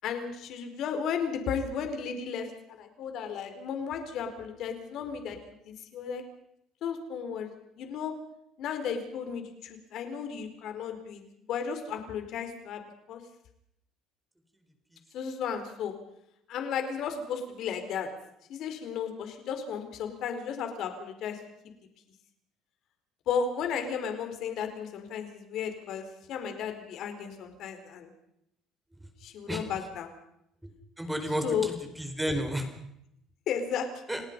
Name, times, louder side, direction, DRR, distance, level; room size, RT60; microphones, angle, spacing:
voice 1, 0.0-6.2 6.8-7.5 7.8-8.1 8.6-12.8 13.1-13.2 15.1-15.9 16.5-18.1 18.5-21.4 21.6-21.7 23.3-28.1 29.2-30.1 31.4-31.7 33.5-34.2, left 7 dB, 60° left, 6 dB, 4.4 m, -34 dB
voice 2, 31.0-32.7 34.1-34.2, equal, 5° right, 6 dB, 4.4 m, -31 dB
29.5 x 19.0 x 5.4 m, 0.77 s
cardioid pair, 135°, 0 cm